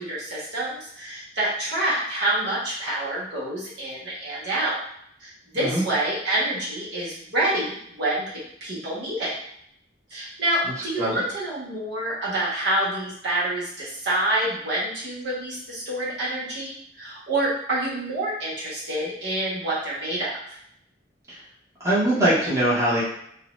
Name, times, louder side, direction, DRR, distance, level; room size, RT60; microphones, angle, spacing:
voice 1, 0.0-4.8 5.2-9.3 10.1-20.3, right 1 dB, 65° right, -8 dB, 1.2 m, -27 dB
voice 2, 10.6-11.2 21.3-21.4 21.8-23.0, right 1 dB, 15° right, -10 dB, 1.0 m, -22 dB
2.7 x 2.2 x 3.0 m, 0.69 s
head